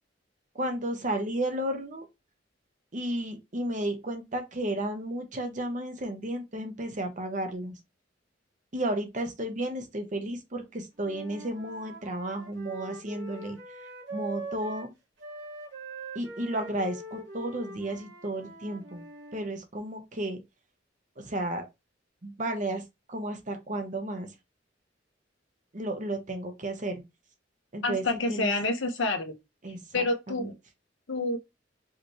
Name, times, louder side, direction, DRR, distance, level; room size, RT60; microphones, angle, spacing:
voice 1, 0.5-2.1 2.9-7.8 8.7-13.6 14.1-14.9 16.1-19.0 19.3-20.4 21.2-21.7 22.2-22.8 23.1-24.3 25.7-27.0 27.7-28.0 28.3-28.5 29.6-30.5, right 1 dB, 40° right, 1.1 m, -33 dB
Wind instrument woodwind instrument, 11.0-14.9 15.2-19.4, right 2 dB, 65° right, 1.9 m, -43 dB
voice 2, 27.8-29.3 29.9-30.5 31.1-31.4, left 2 dB, 85° left, 1.1 m, -28 dB
4.9 x 3.2 x 3.1 m
head